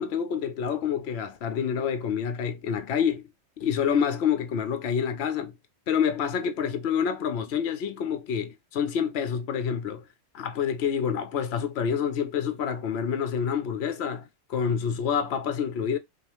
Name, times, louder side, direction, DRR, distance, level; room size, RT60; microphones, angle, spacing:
voice 1, 0.0-3.3 3.6-5.5 5.9-10.0 10.3-14.2 14.5-16.0, left 7 dB, 65° left, 0.9 m, -27 dB
5.1 x 2.4 x 2.9 m
omnidirectional pair, 1.2 m